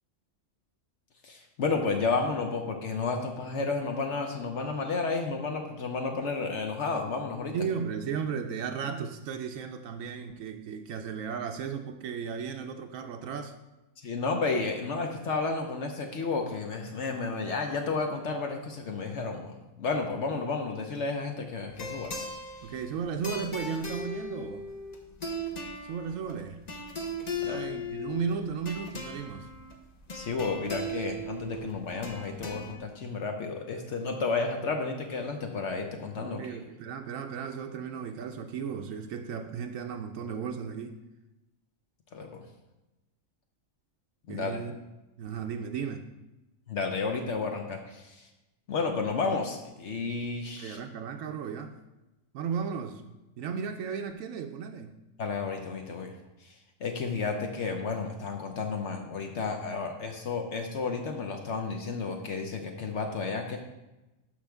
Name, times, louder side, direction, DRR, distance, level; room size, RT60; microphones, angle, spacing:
voice 1, 1.2-7.5 14.0-22.1 27.5-27.6 30.1-36.4 42.1-42.4 44.3-44.5 46.7-48.3 48.7-50.8 55.2-56.1 56.4-56.5 56.8-63.6, left 4 dB, 65° left, 3 dB, 1.1 m, -32 dB
voice 2, 7.5-13.6 22.6-24.7 25.8-26.6 27.4-29.5 36.2-41.0 44.3-44.8 45.2-46.1 50.6-51.8 52.3-53.0 53.4-54.9, right 6 dB, 85° right, 5 dB, 1.0 m, -35 dB
sound 1, 21.7-32.8, left 1 dB, 35° left, 0.9 m, -38 dB
12.5 x 4.9 x 3.5 m, 1.0 s
omnidirectional pair, 1.3 m